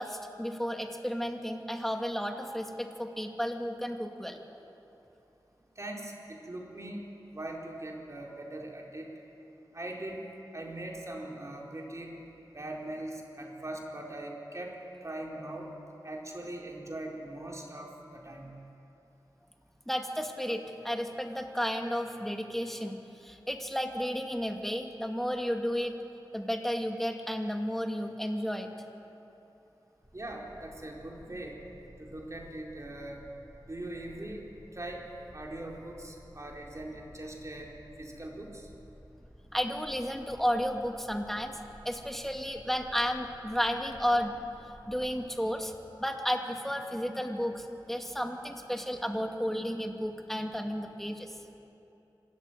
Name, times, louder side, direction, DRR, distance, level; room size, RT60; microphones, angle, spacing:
voice 1, 0.0-4.4 19.9-25.9 26.3-28.7 39.5-41.6 41.8-44.3 44.9-45.7 46.0-51.4, equal, 5° left, 4 dB, 2.2 m, -32 dB
voice 2, 5.8-7.0 7.3-9.1 9.7-10.2 10.5-12.2 12.5-15.7 16.0-18.5 30.1-31.6 32.0-33.2 33.6-34.4 34.7-35.1 35.3-37.7 38.0-38.7, right 1 dB, 40° right, -1 dB, 4.4 m, -41 dB
sound 1, 30.0-45.2, equal, 20° right, 4.2 m, -54 dB
26.0 x 13.5 x 9.2 m, 2.9 s
wide cardioid pair, 50°, 8 cm